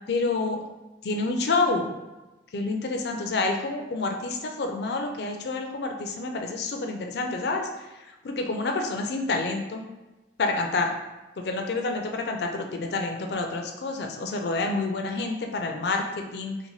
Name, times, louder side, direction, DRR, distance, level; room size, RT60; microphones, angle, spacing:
voice 1, 0.1-0.6 1.0-1.9 2.5-7.7 7.9-9.8 10.4-10.9 11.4-16.6, left 3 dB, 60° left, 3 dB, 0.4 m, -28 dB
4.0 x 2.1 x 3.1 m, 1.1 s
head